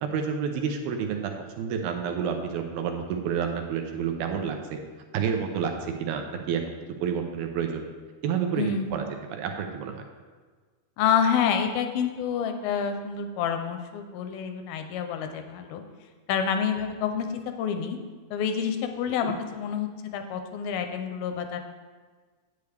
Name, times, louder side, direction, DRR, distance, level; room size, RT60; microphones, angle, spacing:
voice 1, 0.0-4.8 5.1-6.7 7.0-7.8 8.2-10.0 19.2-19.3, right 7 dB, 80° right, 4 dB, 2.4 m, -29 dB
voice 2, 8.6-9.0 11.0-15.8 16.3-18.0 18.3-21.6, left 7 dB, 80° left, 6 dB, 2.3 m, -28 dB
10.5 x 8.2 x 3.4 m, 1.5 s
omnidirectional pair, 4.6 m